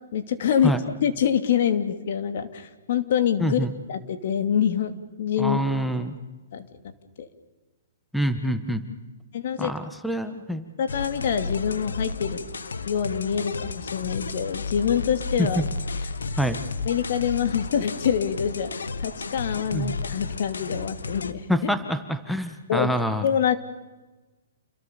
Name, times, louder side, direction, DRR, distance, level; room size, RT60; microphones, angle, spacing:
voice 1, 0.1-0.7 1.0-5.6 6.5-6.7 7.2-7.3 9.3-9.7 10.8-12.5 12.8-15.6 16.8-21.5 22.7-22.9 23.2-23.6, left 8 dB, 60° left, 9 dB, 2.6 m, -25 dB
voice 2, 3.4-3.7 5.4-6.1 8.1-8.8 9.6-10.7 15.4-15.6 16.4-16.6 19.7-20.0 21.5-23.2, equal, ahead, 9 dB, 1.5 m, -26 dB
sound 1, 10.9-21.3, left 4 dB, 85° left, 1.9 m, -33 dB
29.5 x 22.5 x 7.0 m, 1.2 s
hypercardioid pair, 140°, 0 cm